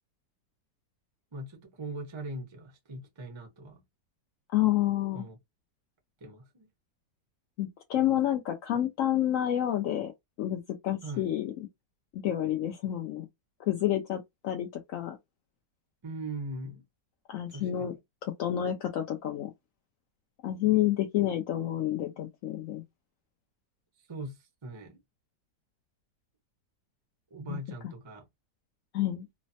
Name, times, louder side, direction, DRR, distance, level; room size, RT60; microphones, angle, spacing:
voice 1, 1.3-3.8 5.1-5.4 6.2-6.7 11.0-11.3 16.0-16.8 17.5-18.0 24.1-25.0 27.3-28.2, right 2 dB, 35° right, 0.4 m, -40 dB
voice 2, 4.5-5.2 7.6-10.1 10.4-11.5 12.1-13.3 13.7-15.2 17.3-17.9 18.2-19.5 20.4-22.8 27.5-27.6 28.9-29.3, left 12 dB, 75° left, 0.7 m, -29 dB
3.2 x 2.1 x 2.6 m
omnidirectional pair, 1.9 m